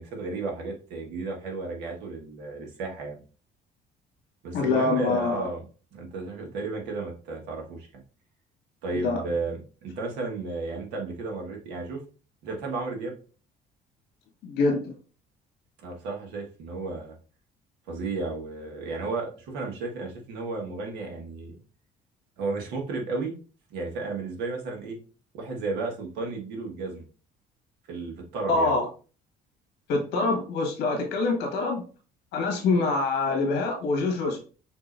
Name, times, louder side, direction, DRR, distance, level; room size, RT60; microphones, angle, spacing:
voice 1, 0.0-3.2 4.4-5.6 5.9-8.0 8.8-12.0 12.4-13.2 15.8-17.1 17.9-21.5 22.4-23.3 23.7-25.0 25.3-27.0 27.9-28.7, right 3 dB, 90° right, 1 dB, 1.5 m, -33 dB
voice 2, 4.5-5.5 8.9-9.2 14.4-14.8 28.5-28.9 29.9-31.8 32.3-34.4, left 3 dB, 90° left, 3 dB, 1.6 m, -25 dB
6.0 x 2.8 x 2.6 m, 0.37 s
cardioid pair, 110°, 17 cm